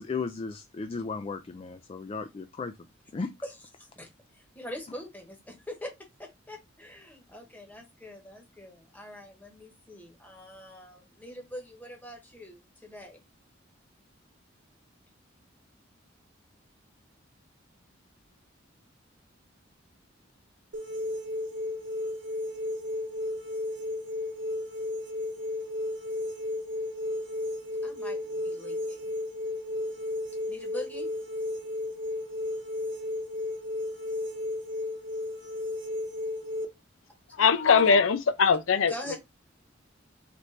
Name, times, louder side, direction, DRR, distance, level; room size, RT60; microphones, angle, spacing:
voice 1, 0.0-2.8 3.1-3.3, left 4 dB, 30° left, 0.3 m, -35 dB
voice 2, 3.4-5.9 6.2-13.2 27.8-29.1 30.5-31.1 38.9-39.2, left 1 dB, 10° left, 1.1 m, -43 dB
sound 1, 20.7-36.7, left 1 dB, 60° right, 1.0 m, -33 dB
voice 3, 37.4-38.9, left 5 dB, 85° left, 0.5 m, -21 dB
4.1 x 3.1 x 3.2 m
head